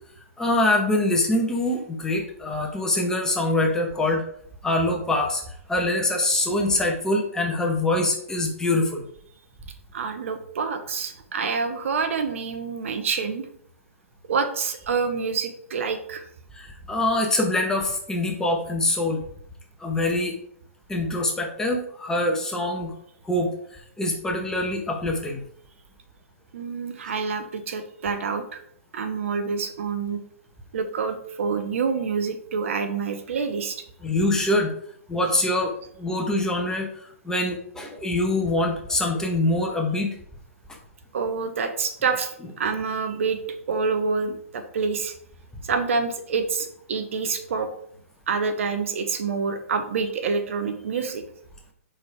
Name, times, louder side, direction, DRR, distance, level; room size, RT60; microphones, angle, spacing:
voice 1, 0.4-4.2 4.6-5.4 5.7-9.0 16.5-19.2 19.8-20.4 20.9-22.9 23.2-25.4 34.0-34.7 35.1-35.7 36.0-40.1, left 2 dB, 5° left, 1 dB, 1.1 m, -24 dB
voice 2, 9.9-13.5 14.3-16.3 26.5-28.6 28.9-30.2 30.7-33.8 41.1-43.4 43.7-45.1 45.6-47.7 48.3-51.2, right 5 dB, 60° right, 8 dB, 0.9 m, -27 dB
5.2 x 4.4 x 4.6 m, 0.66 s
figure-of-eight pair, 125°, 8 cm